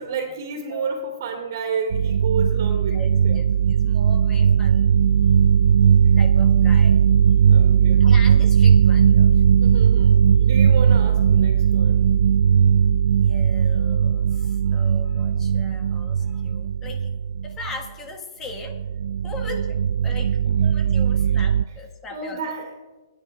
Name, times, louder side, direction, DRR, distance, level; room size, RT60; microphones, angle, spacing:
voice 1, 0.0-3.5 6.0-6.1 7.5-8.1 9.6-12.1 19.4-19.7 22.1-22.8, right 5 dB, 45° right, 1 dB, 2.5 m, -31 dB
sound 1, 1.9-17.8 18.5-21.7, right 8 dB, 70° right, 0.3 m, -18 dB
voice 2, 2.9-4.9 6.2-7.0 8.0-9.3 13.0-17.1 17.4-18.8 19.2-19.7 20.0-22.5, left 3 dB, 15° left, 3 dB, 1.6 m, -39 dB
22.5 x 10.0 x 3.4 m, 1.2 s
hypercardioid pair, 160°, 2 cm